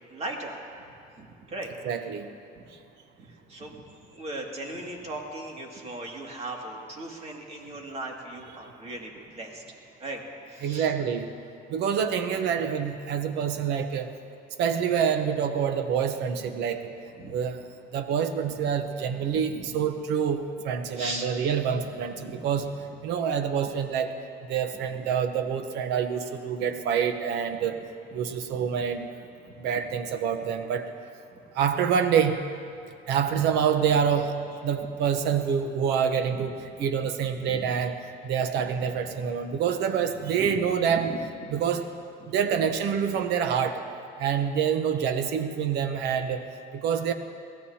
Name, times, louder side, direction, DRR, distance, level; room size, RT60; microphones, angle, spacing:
voice 1, 0.1-0.6 1.2-1.7 2.5-2.6 3.2-3.8 4.1-9.6 10.0-10.2 10.5-10.9 17.2-17.4 19.2-19.7 20.9-21.3 22.2-22.4 24.9-25.0 28.5-28.7 29.5-29.6 36.3-36.5 37.4-37.6 38.8-38.9 40.3-40.5 41.1-41.6, right 2 dB, 40° right, 0 dB, 2.4 m, -38 dB
voice 2, 1.8-2.3 10.6-11.3 11.7-14.1 14.6-16.8 17.3-17.6 17.9-22.7 23.0-24.1 24.5-27.8 28.1-29.2 29.6-30.9 31.5-32.4 33.1-34.3 34.6-38.0 38.2-41.1 41.5-41.9 42.3-43.8 44.2-46.4 46.7-47.1, right 7 dB, 85° right, 8 dB, 1.0 m, -26 dB
22.5 x 16.5 x 2.9 m, 2.4 s
cardioid pair, 110°, 17 cm